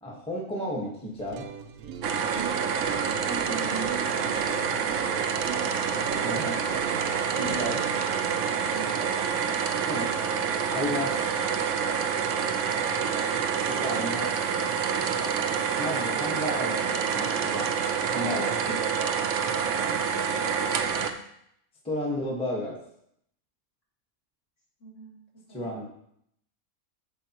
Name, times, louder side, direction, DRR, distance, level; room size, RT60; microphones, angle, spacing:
voice 1, 0.0-1.5 6.2-6.6 7.4-7.8 9.9-10.1 10.7-11.2 13.7-14.3 15.8-17.7 18.1-18.5 21.8-22.8 25.5-25.9, equal, 5° left, -3 dB, 1.3 m, -32 dB
sound 1, 1.1-11.1, right 7 dB, 90° right, 1.1 m, -41 dB
sound 2, 2.0-21.1, right 6 dB, 65° right, 0.9 m, -27 dB
voice 2, 2.3-4.9 5.9-6.5 7.4-7.7 8.7-9.2 18.1-18.7 19.8-20.3 24.8-25.2 25.5-25.9, right 2 dB, 55° left, -7 dB, 3.8 m, -41 dB
14.5 x 4.9 x 3.0 m, 0.73 s
omnidirectional pair, 1.5 m